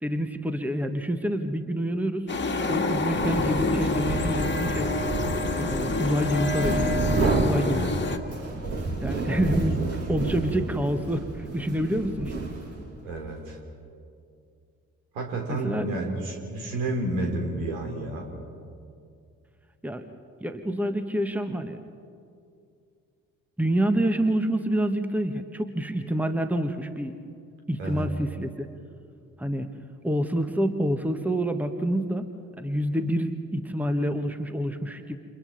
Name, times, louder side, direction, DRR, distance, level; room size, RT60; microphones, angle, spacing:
voice 1, 0.0-2.3 2.7-4.9 5.6-6.9 7.4-7.9 9.0-9.8 10.1-12.3 15.5-15.9 19.8-20.0 20.4-21.8 23.6-27.1 27.7-28.7 29.4-29.7 30.0-32.3 32.6-35.2, right 1 dB, 5° right, 8 dB, 1.4 m, -27 dB
sound 1, 2.3-8.2, left 2 dB, 30° left, 2.0 m, -27 dB
sound 2, 3.0-13.0, right 2 dB, 35° right, 3.8 m, -30 dB
voice 2, 7.7-8.0 9.3-10.0 13.0-13.6 15.1-18.3 27.8-28.1, right 2 dB, 70° right, 2 dB, 3.3 m, -31 dB
29.5 x 28.5 x 4.1 m, 2.4 s
figure-of-eight pair, 40°, 39 cm